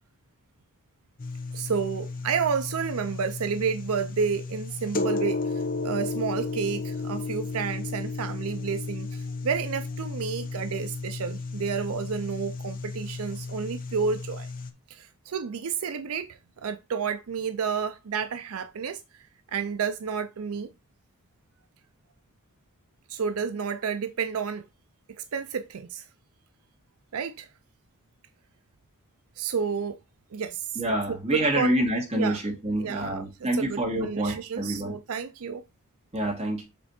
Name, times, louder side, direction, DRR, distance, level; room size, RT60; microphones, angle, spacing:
sound 1, 1.2-14.7, left 3 dB, 40° left, 0.8 m, -33 dB
voice 1, 1.5-14.5 14.9-20.7 23.1-24.6 25.1-26.1 27.1-27.5 29.4-30.0 30.3-30.8 31.1-31.8 32.1-32.4 32.8-35.6, right 6 dB, 80° right, 0.5 m, -31 dB
voice 2, 30.8-35.0 36.1-36.6, right 1 dB, 30° right, 2.2 m, -27 dB
7.3 x 3.3 x 4.3 m
head